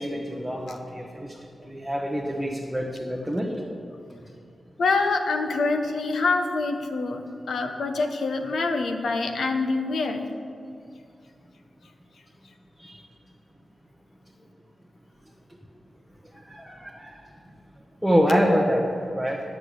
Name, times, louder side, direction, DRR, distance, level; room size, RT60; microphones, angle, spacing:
voice 1, 0.0-1.4 1.6-3.5 12.8-13.1 16.3-17.2 18.0-18.9 19.1-19.4, equal, ahead, -3 dB, 1.0 m, -26 dB
voice 2, 4.8-10.3, left 3 dB, 85° left, 5 dB, 1.0 m, -25 dB
10.5 x 6.2 x 8.4 m, 2.4 s
wide cardioid pair, 155°, 0 cm